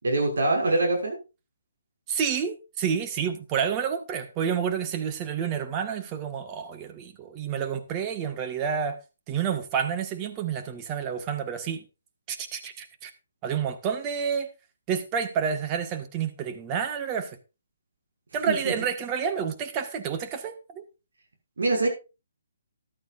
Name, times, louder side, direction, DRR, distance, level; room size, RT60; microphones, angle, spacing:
voice 1, 0.0-1.2 18.5-18.6 21.6-21.9, right 2 dB, 75° right, 6.3 m, -23 dB
voice 2, 2.1-9.0 9.3-11.8 12.3-13.1 13.4-14.5 14.9-17.3 18.3-20.8, right 7 dB, 25° right, 1.7 m, -29 dB
14.0 x 12.0 x 2.6 m
hypercardioid pair, 145°, 0 cm